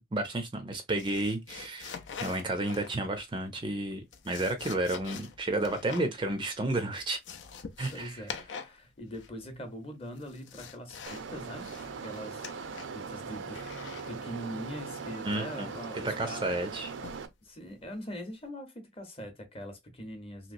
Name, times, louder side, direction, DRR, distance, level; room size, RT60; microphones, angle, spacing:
voice 1, 0.1-7.2 7.8-8.3 15.2-15.7 16.0-16.9, right 2 dB, 25° right, 0.4 m, -32 dB
sound 1, 1.0-3.2 3.9-6.1 6.4-6.5 6.8-8.8 9.1-9.5 10.0-11.3 11.6-13.0 13.5-14.1 15.3-15.7 17.0-17.3 17.8-18.1, left 6 dB, 75° left, 0.5 m, -44 dB
voice 2, 7.9-11.7 12.0-16.5 17.4-20.5, equal, 30° left, 0.8 m, -42 dB
sound 2, 11.1-17.3, right 5 dB, 80° right, 0.5 m, -40 dB
3.0 x 2.9 x 2.5 m
head